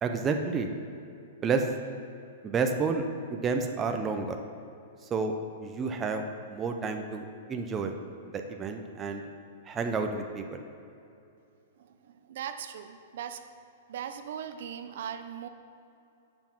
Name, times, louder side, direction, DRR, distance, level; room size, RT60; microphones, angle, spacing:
voice 1, 0.0-0.7 1.4-1.7 2.4-3.0 3.3-4.4 5.1-5.3 5.6-8.0 8.3-9.2 9.7-10.6, right 4 dB, 15° right, 4 dB, 0.5 m, -30 dB
voice 2, 11.8-13.4 13.9-15.5, right 8 dB, 65° right, 8 dB, 0.5 m, -39 dB
6.9 x 5.6 x 5.9 m, 2.7 s
hypercardioid pair, 155°, 0 cm